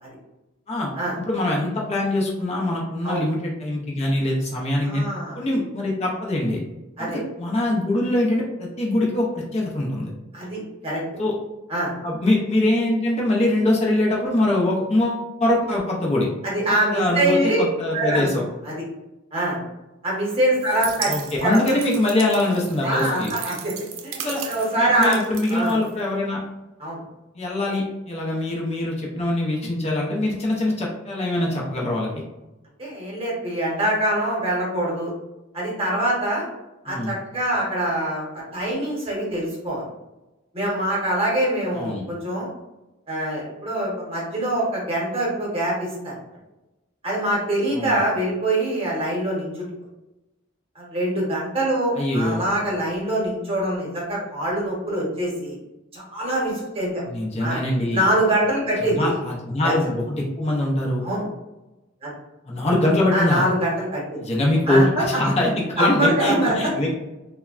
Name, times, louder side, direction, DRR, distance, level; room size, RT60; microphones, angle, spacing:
voice 1, 1.3-5.0 5.3-6.6 7.0-7.1 7.4-10.1 11.2-11.3 12.0-16.3 16.7-18.5 21.1-23.3 24.2-24.4 24.7-26.4 27.3-32.2 36.9-37.1 41.7-42.0 47.8-48.0 51.9-52.4 57.1-58.0 58.8-61.0 62.5-63.4 64.2-66.9, left 1 dB, 35° left, -3 dB, 0.5 m, -23 dB
voice 2, 4.8-5.4 7.0-7.2 10.3-11.0 11.7-11.9 16.4-17.6 17.9-18.3 18.6-18.7 19.3-19.6 20.0-21.7 22.8-23.7 24.0-25.2 25.5-25.8 26.8-27.0 32.8-35.1 35.5-36.4 36.8-39.8 40.5-42.5 43.1-46.1 47.0-49.7 50.7-55.5 55.9-57.0 57.4-57.6 57.9-59.2 59.6-59.7 61.0-61.2 62.0-62.1 63.1-64.2 64.7-65.3 65.8-66.7, right 1 dB, 30° right, -4 dB, 0.9 m, -24 dB
sound 1, 20.5-26.3, right 8 dB, 90° right, 0.4 m, -36 dB
3.2 x 2.1 x 2.4 m, 1.0 s
head